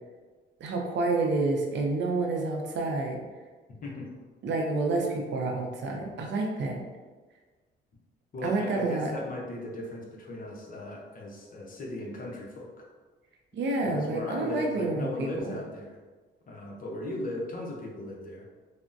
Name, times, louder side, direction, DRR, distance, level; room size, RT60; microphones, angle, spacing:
voice 1, 0.6-3.2 4.4-6.8 8.4-9.1 13.5-15.6, right 3 dB, 65° right, 1 dB, 0.6 m, -29 dB
voice 2, 8.3-12.7 13.8-16.0 16.5-18.5, left 2 dB, 45° left, -2 dB, 0.7 m, -37 dB
3.4 x 2.1 x 2.6 m, 1.4 s
cardioid pair, 90°, 20 cm